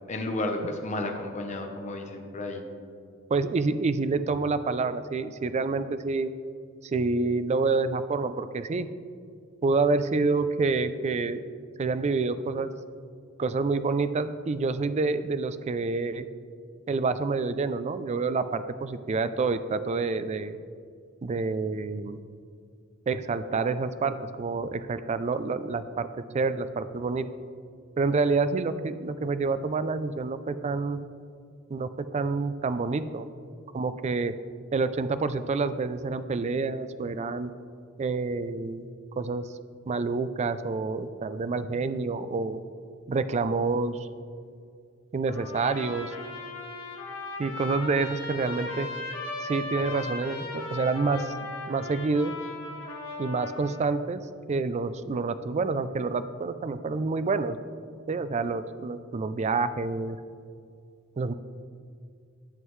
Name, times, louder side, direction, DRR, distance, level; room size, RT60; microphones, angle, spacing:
voice 1, 0.1-2.6, left 2 dB, 35° left, 3 dB, 0.8 m, -32 dB
voice 2, 3.3-6.3 6.8-8.9 9.6-11.4 11.8-12.7 13.4-16.3 16.9-20.6 21.2-22.2 23.1-26.1 26.3-27.3 28.0-31.0 31.7-33.3 33.7-34.3 34.7-37.5 38.0-38.9 39.2-39.4 39.9-42.6 43.1-44.1 45.1-46.1 47.4-48.9 49.4-51.3 51.7-52.3 53.2-54.2 54.5-57.6 58.1-60.2 61.2-61.3, right 4 dB, 35° right, 12 dB, 0.3 m, -28 dB
Trumpet, 45.3-53.9, left 2 dB, 75° left, 1.6 m, -37 dB
11.0 x 7.4 x 3.1 m, 2.2 s
head